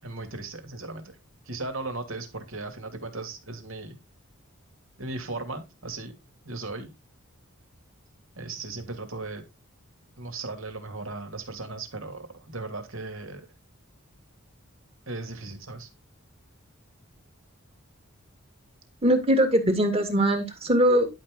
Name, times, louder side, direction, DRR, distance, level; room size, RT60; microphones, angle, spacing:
voice 1, 0.0-1.2 1.4-4.0 5.0-6.1 6.4-6.9 8.4-9.4 10.2-13.5 15.1-15.9, right 3 dB, 65° right, 6 dB, 2.8 m, -37 dB
voice 2, 19.0-21.1, right 1 dB, 25° right, 6 dB, 2.3 m, -21 dB
11.5 x 5.9 x 3.8 m, 0.25 s
head